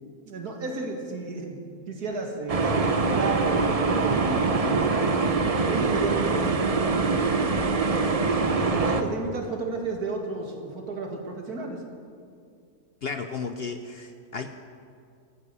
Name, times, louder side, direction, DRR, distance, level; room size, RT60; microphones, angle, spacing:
voice 1, 0.3-1.6 1.9-5.3 5.7-7.3 7.8-8.2 8.5-11.8, right 3 dB, 80° right, 2 dB, 2.4 m, -33 dB
sound 1, 2.5-9.0, right 4 dB, 35° right, 0.6 m, -24 dB
voice 2, 13.0-14.5, left 5 dB, 55° left, 7 dB, 0.7 m, -33 dB
14.0 x 9.9 x 8.4 m, 2.3 s
omnidirectional pair, 1.6 m